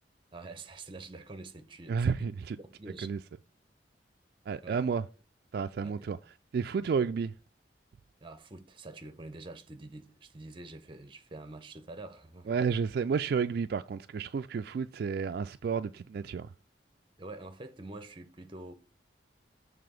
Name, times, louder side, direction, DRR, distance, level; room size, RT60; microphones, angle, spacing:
voice 1, 0.3-2.3 2.6-3.1 4.6-4.8 5.8-6.1 8.2-12.5 17.2-18.7, right 2 dB, 30° right, 0.7 m, -46 dB
voice 2, 1.9-2.6 3.0-3.2 4.5-5.0 5.5-6.2 6.5-7.3 12.5-16.5, right 6 dB, 60° right, 0.3 m, -31 dB
6.8 x 3.4 x 5.1 m
head